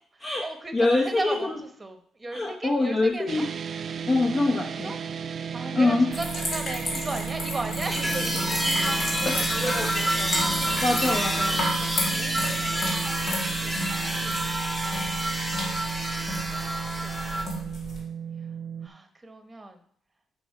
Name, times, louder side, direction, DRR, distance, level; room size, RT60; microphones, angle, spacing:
voice 1, 0.1-3.5 4.6-5.0 5.5-10.8 11.5-15.6 16.1-17.8 18.8-19.8, right 2 dB, 20° right, 6 dB, 1.0 m, -38 dB
voice 2, 0.7-1.4 2.3-3.5 4.1-4.9 5.7-6.1 9.3-9.9 10.8-11.7, left 2 dB, 35° left, 0 dB, 0.8 m, -24 dB
sound 1, 3.3-18.9, right 7 dB, 50° right, 0.4 m, -34 dB
sound 2, 6.1-18.0, left 1 dB, 65° left, 2.4 m, -33 dB
sound 3, 7.8-17.5, equal, 10° left, 1.2 m, -28 dB
6.1 x 4.9 x 4.8 m, 0.62 s
cardioid pair, 90°, 0 cm